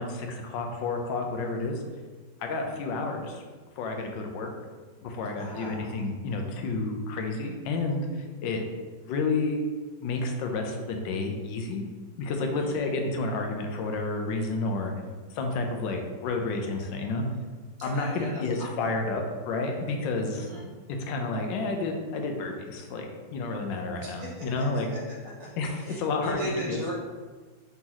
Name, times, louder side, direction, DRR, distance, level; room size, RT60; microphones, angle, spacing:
voice 1, 0.0-1.8 2.4-3.4 3.8-4.5 5.0-8.1 8.4-8.6 9.1-9.6 10.0-11.8 12.2-14.9 15.3-17.2 17.8-20.5 21.1-24.9 25.6-26.8, left 3 dB, 80° left, 3 dB, 1.3 m, -30 dB
voice 2, 5.3-6.0 12.6-12.9 17.8-18.9 20.3-20.7 24.0-26.9, equal, 25° right, -8 dB, 1.3 m, -38 dB
4.1 x 2.9 x 3.8 m, 1.4 s
omnidirectional pair, 2.0 m